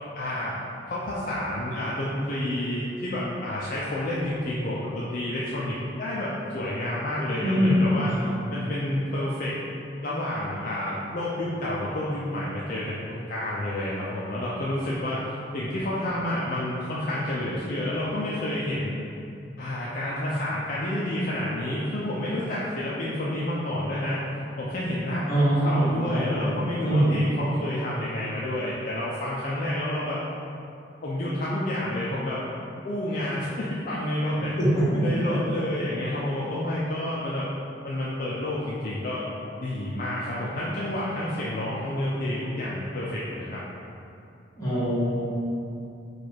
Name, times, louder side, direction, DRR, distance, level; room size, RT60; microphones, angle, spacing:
voice 1, 0.1-0.6 0.9-8.1 8.5-9.6 10.0-18.9 19.6-24.2 24.6-30.2 31.0-32.4 32.8-34.5 35.0-37.5 37.8-39.3 39.6-43.6, left 1 dB, 45° left, -7 dB, 0.4 m, -29 dB
voice 2, 7.4-8.3 25.3-26.6 26.8-27.2 34.4-35.4 44.6-45.3, equal, 20° left, -12 dB, 1.5 m, -23 dB
4.7 x 2.4 x 4.3 m, 2.7 s
head